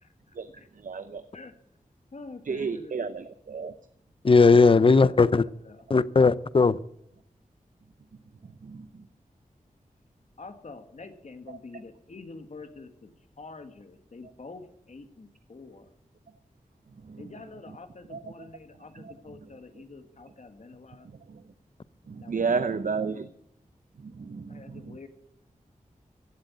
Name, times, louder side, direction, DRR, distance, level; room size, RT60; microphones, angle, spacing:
voice 1, 0.8-1.2 2.4-3.7 8.6-8.9 11.5-11.6 17.0-17.3 18.1-18.5 18.9-19.1 21.3-21.4 22.1-23.3 24.0-25.0, right 5 dB, 70° right, 11 dB, 0.7 m, -32 dB
voice 2, 2.1-3.0 4.5-5.9 10.4-13.1 13.4-15.9 17.2-21.1 22.2-22.4 24.5-25.1, left 3 dB, 55° left, 8 dB, 1.7 m, -46 dB
voice 3, 4.2-5.4 5.9-6.8, left 4 dB, 40° left, 18 dB, 0.6 m, -18 dB
16.0 x 7.9 x 9.4 m, 0.72 s
wide cardioid pair, 100°, 14 cm